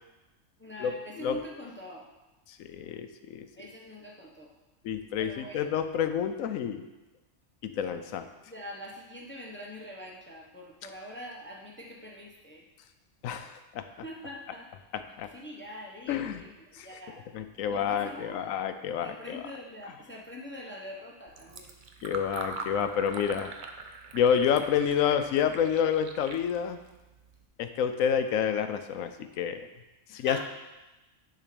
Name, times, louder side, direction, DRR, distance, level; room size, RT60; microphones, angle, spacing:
voice 1, 0.6-2.0 3.6-4.5 5.2-5.7 7.7-7.8 8.4-12.7 14.0-14.7 15.2-17.2 17.7-18.6 19.0-21.7 30.1-30.4, equal, 10° left, -1 dB, 0.8 m, -44 dB
voice 2, 2.6-3.5 4.8-6.8 7.6-8.3 13.2-13.8 14.9-15.3 16.1-16.4 16.8-16.9 17.3-19.4 22.0-23.5 24.1-26.8 27.6-29.1 29.4-29.7 30.1-30.4, left 8 dB, 85° left, 9 dB, 1.0 m, -28 dB
Fill (with liquid), 21.3-27.5, right 4 dB, 50° right, 0.6 m, -43 dB
10.0 x 3.9 x 5.1 m, 1.0 s
omnidirectional pair, 1.4 m